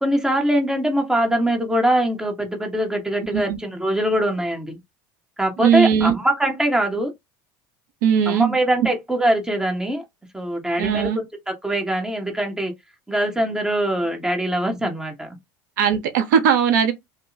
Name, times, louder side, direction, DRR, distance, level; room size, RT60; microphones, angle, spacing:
voice 1, 0.0-4.8 5.4-7.1 8.3-10.0 10.3-12.7 13.1-15.3, right 1 dB, 5° right, 1.3 m, -22 dB
voice 2, 5.6-6.1 8.0-8.6 10.8-11.2 15.8-16.9, right 8 dB, 80° right, 0.7 m, -19 dB
2.7 x 2.1 x 3.9 m
hypercardioid pair, 85°, 10 cm